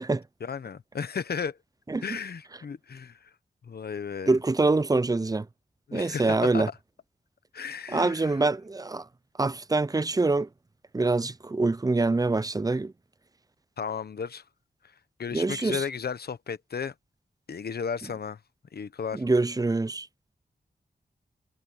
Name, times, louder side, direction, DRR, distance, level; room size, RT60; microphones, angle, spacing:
voice 1, 0.4-1.6 2.0-3.2 3.6-4.3 5.9-6.7 7.5-8.4 13.8-14.4 15.2-16.9 17.5-18.4 18.7-19.2, left 6 dB, 70° left, 1.2 m, -34 dB
voice 2, 4.3-5.5 5.9-6.7 7.9-9.0 9.4-10.5 10.9-12.9 15.3-15.8 19.1-20.1, right 3 dB, 20° right, 0.5 m, -25 dB
cardioid pair, 65°, 17 cm